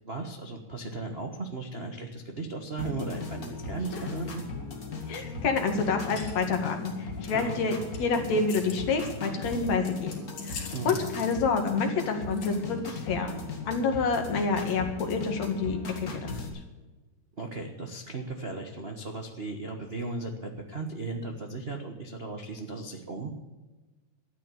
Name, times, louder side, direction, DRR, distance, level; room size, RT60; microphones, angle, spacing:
voice 1, 0.0-4.4 7.3-7.8 10.7-11.0 17.4-23.3, right 3 dB, 90° right, 2 dB, 0.5 m, -36 dB
sound 1, 2.8-16.5, left 4 dB, 35° left, 2.1 m, -38 dB
sound 2, 3.1-14.4, left 5 dB, 90° left, 4.3 m, -47 dB
voice 2, 5.1-10.1 10.4-13.4 13.7-16.4, left 4 dB, 65° left, 4 dB, 3.1 m, -28 dB
13.0 x 9.5 x 8.3 m, 1.2 s
omnidirectional pair, 3.4 m